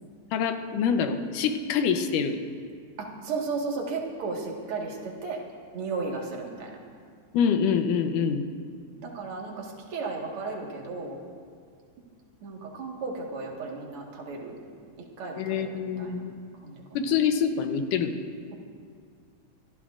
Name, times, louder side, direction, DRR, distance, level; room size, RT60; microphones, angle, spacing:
voice 1, 0.3-2.4 7.3-8.5 15.4-16.3 16.9-18.2, left 7 dB, 90° left, 7 dB, 2.4 m, -25 dB
voice 2, 3.0-5.4 5.7-6.8 9.0-11.2 12.4-14.6 15.2-16.2 16.6-17.1, right 4 dB, 50° right, -2 dB, 2.4 m, -34 dB
25.5 x 12.5 x 2.5 m, 2.2 s
omnidirectional pair, 3.6 m